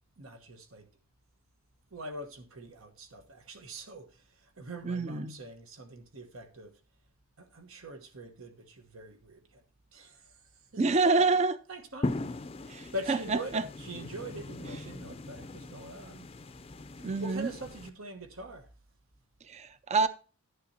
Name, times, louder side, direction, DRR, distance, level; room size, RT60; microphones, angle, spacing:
voice 1, 0.2-0.9 1.9-6.8 7.4-9.6 9.9-11.2 11.7-16.3 17.0-18.7, right 1 dB, 80° right, 1.2 m, -44 dB
voice 2, 4.8-5.4 10.8-11.6 12.7-13.6 17.0-17.5 19.4-20.1, right 3 dB, 35° right, 0.4 m, -27 dB
sound 1, 12.0-17.9, left 2 dB, 30° left, 0.4 m, -39 dB
11.0 x 9.7 x 2.8 m
head